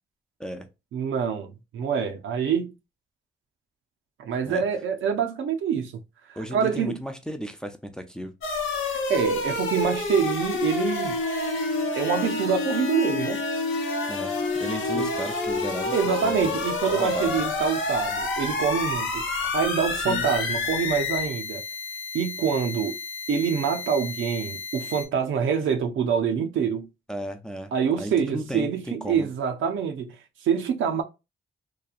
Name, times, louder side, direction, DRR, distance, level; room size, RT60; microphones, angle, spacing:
voice 1, 0.9-2.7 4.2-5.9 6.3-7.0 8.9-11.2 12.0-13.4 14.9-15.1 15.9-21.6 22.1-23.0 23.3-26.9 27.7-30.2 30.4-31.0, right 7 dB, 80° right, 0.5 m, -26 dB
voice 2, 6.4-8.3 14.1-16.5 16.9-17.4 19.9-20.3 27.1-27.7 28.0-29.3, equal, 5° left, 0.5 m, -34 dB
sound 1, 8.4-25.0, left 3 dB, 75° left, 0.8 m, -29 dB
2.9 x 2.2 x 2.3 m
cardioid pair, 85°, 20 cm